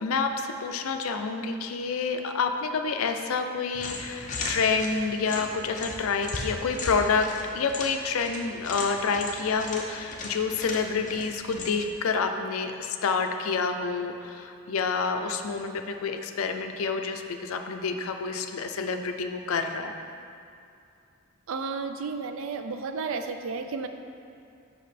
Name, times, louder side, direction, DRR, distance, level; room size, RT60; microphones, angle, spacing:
voice 1, 0.0-20.0, left 5 dB, 75° left, 6 dB, 0.4 m, -28 dB
sound 1, 3.7-12.0, left 3 dB, 35° left, 0.6 m, -37 dB
voice 2, 21.5-23.9, right 4 dB, 65° right, 7 dB, 0.4 m, -32 dB
5.6 x 5.2 x 4.1 m, 2.5 s
head